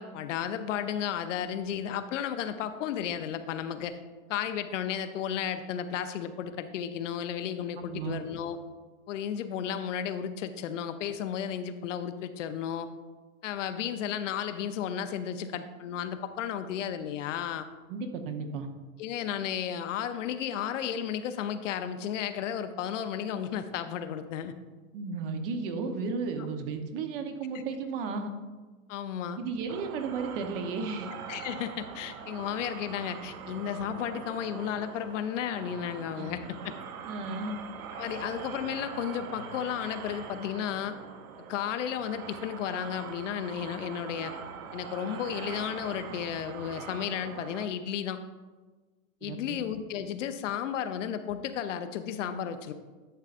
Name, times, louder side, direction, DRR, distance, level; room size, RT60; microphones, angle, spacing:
voice 1, 0.0-4.0 4.3-8.6 9.1-12.9 13.4-17.7 19.0-24.5 27.5-27.6 28.9-29.4 31.3-36.7 37.9-41.0 41.4-44.3 44.7-48.2 49.2-52.7, left 9 dB, 60° left, 10 dB, 0.7 m, -33 dB
voice 2, 7.8-8.2 17.9-18.7 24.9-28.3 29.4-31.1 36.2-36.4 37.1-37.5 49.2-49.6, right 4 dB, 40° right, 6 dB, 0.9 m, -34 dB
sound 1, 29.7-47.7, right 7 dB, 85° right, 0.9 m, -43 dB
11.0 x 6.6 x 2.5 m, 1.3 s
hypercardioid pair, 145°, 42 cm